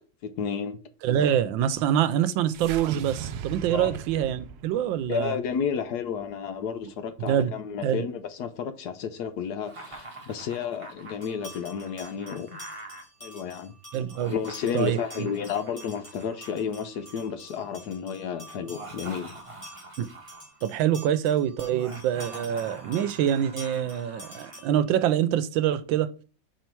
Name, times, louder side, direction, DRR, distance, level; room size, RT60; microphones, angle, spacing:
voice 1, 0.2-0.8 3.7-4.0 5.1-12.6 13.2-13.7 14.3-19.3, left 7 dB, 65° left, 1.1 m, -32 dB
voice 2, 1.0-5.4 7.2-7.5 7.8-8.0 13.9-14.3 14.7-15.3 20.0-20.1 20.6-26.1, right 10 dB, 85° right, 1.4 m, -25 dB
sound 1, 2.5-6.9, right 8 dB, 70° right, 1.0 m, -39 dB
Laughter, 9.6-13.0 14.0-17.3 18.6-20.6 21.7-24.6, right 2 dB, 20° right, 0.9 m, -45 dB
sound 2, 11.2-24.9, right 1 dB, 10° left, 2.9 m, -48 dB
5.6 x 4.7 x 4.5 m
omnidirectional pair, 2.0 m